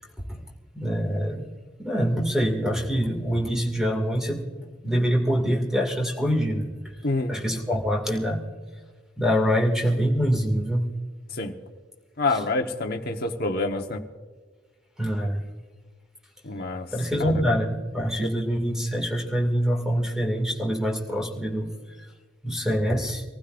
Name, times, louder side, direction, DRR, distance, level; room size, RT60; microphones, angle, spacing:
voice 1, 0.7-1.5 1.8-4.4 4.8-6.7 7.3-8.4 9.2-10.9 12.3-12.4 15.0-15.4 16.9-21.7 22.0-22.1 22.4-23.2, equal, 5° right, 1 dB, 2.3 m, -25 dB
voice 2, 12.2-14.0 16.4-16.9 17.2-17.3, left 2 dB, 50° left, 4 dB, 1.2 m, -27 dB
25.0 x 15.5 x 2.6 m, 1.5 s
head